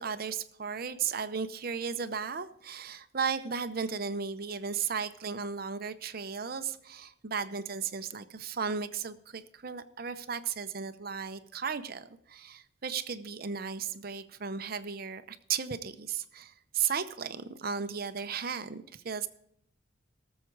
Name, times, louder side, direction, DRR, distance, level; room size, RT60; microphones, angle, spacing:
voice 1, 0.0-19.3, right 6 dB, 50° right, 11 dB, 0.7 m, -35 dB
18.5 x 7.4 x 4.7 m, 0.70 s
head